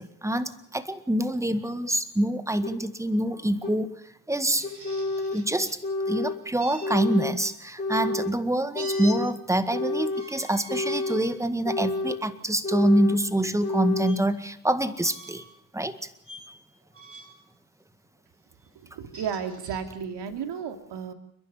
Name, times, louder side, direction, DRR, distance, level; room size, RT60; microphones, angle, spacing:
voice 1, 0.0-4.0 4.3-4.7 5.3-5.8 6.1-15.4 15.7-16.1, right 1 dB, 5° right, 12 dB, 1.8 m, -26 dB
sound 1, 2.6-2.7 3.6-3.7 4.6-5.4 5.8-6.4 6.8-7.4 7.8-8.3 8.7-9.3 9.7-10.3 10.7-11.2 11.6-12.2 12.6-13.2 13.6-14.2, left 2 dB, 15° left, 7.5 m, -29 dB
sound 2, 4.6-5.8 6.6-7.6 8.7-9.2 10.0-11.4 12.0-12.2 14.0-14.2 15.0-15.6 16.2-16.5 16.9-17.4 18.9-19.8, right 1 dB, 25° right, 6.0 m, -44 dB
voice 2, 19.1-21.1, right 7 dB, 55° right, 7 dB, 2.8 m, -33 dB
29.0 x 11.0 x 9.1 m, 0.73 s
figure-of-eight pair, 50°, 49 cm